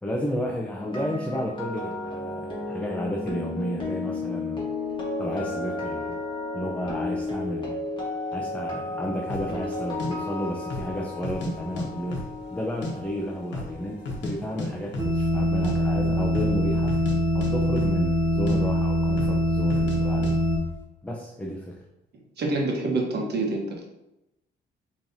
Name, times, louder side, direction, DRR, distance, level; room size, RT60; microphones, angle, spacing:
voice 1, 0.0-4.7 5.2-6.2 6.5-7.8 8.3-12.2 12.5-17.0 17.3-20.4 21.0-21.8, equal, 5° left, -1 dB, 0.6 m, -32 dB
sound 1, 0.7-14.8 15.0-15.3, left 2 dB, 25° left, 1.5 m, -33 dB
sound 2, 9.3-9.5 10.0-10.1 10.6-10.9 11.2-11.9 12.1-12.9 13.2-13.3 13.5-14.3 14.6-14.7 14.9-15.2 15.5-15.8 16.3-16.6 16.9-17.2 17.4-18.2 18.5-18.6 19.2-19.4 19.7-20.0 20.2-20.4, left 2 dB, 65° left, 1.0 m, -33 dB
sound 3, 15.0-20.6, equal, 15° right, 0.9 m, -23 dB
voice 2, 22.4-23.8, right 2 dB, 55° right, 0 dB, 1.1 m, -26 dB
5.3 x 3.1 x 2.6 m, 0.89 s
cardioid pair, 90°, 20 cm